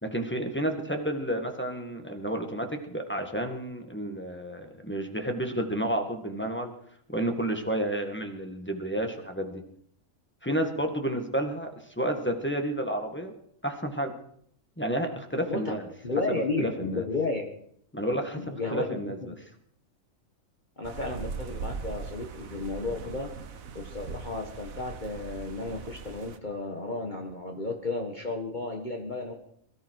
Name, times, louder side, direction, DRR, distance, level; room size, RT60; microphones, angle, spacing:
voice 1, 0.0-6.7 7.1-9.6 10.4-13.3 13.6-14.1 14.8-15.9 16.3-17.0 17.9-19.4, right 1 dB, 10° left, 4 dB, 1.7 m, -31 dB
voice 2, 16.0-17.5 18.4-19.3 20.8-23.3 23.7-29.3, left 3 dB, 35° left, 2 dB, 1.6 m, -33 dB
sound 1, 20.8-26.4, right 5 dB, 85° right, 1.5 m, -40 dB
22.0 x 13.5 x 4.7 m, 0.66 s
omnidirectional pair, 1.4 m